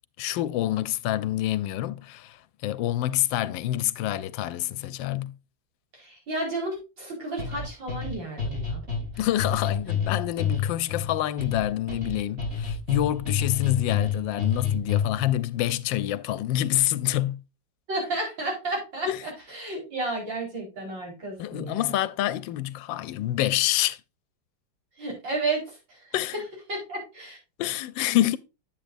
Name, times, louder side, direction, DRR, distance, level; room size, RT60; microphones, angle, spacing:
voice 1, 0.2-5.3 9.2-17.4 19.1-19.2 21.4-24.0 26.1-26.4 27.6-28.4, left 13 dB, 90° left, 1.3 m, -27 dB
voice 2, 5.9-9.0 17.9-21.9 25.0-26.1 26.7-27.4, right 2 dB, 80° right, 5.1 m, -32 dB
sound 1, 7.4-15.3, left 7 dB, 35° right, 4.4 m, -29 dB
10.0 x 7.7 x 2.6 m
omnidirectional pair, 2.0 m